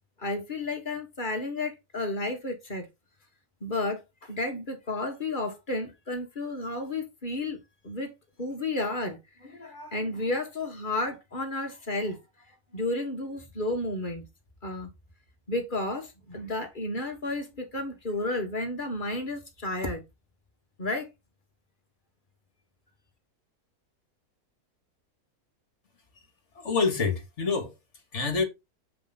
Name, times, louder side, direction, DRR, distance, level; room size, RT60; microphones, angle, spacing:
voice 1, 0.2-2.9 3.6-7.6 7.8-8.1 8.4-12.2 12.7-14.2 14.6-14.9 15.5-20.0 20.8-21.1, left 2 dB, 35° left, 1.5 m, -32 dB
voice 2, 26.6-27.7 28.1-28.4, left 4 dB, 50° left, 1.8 m, -26 dB
7.1 x 5.1 x 4.0 m
omnidirectional pair, 1.6 m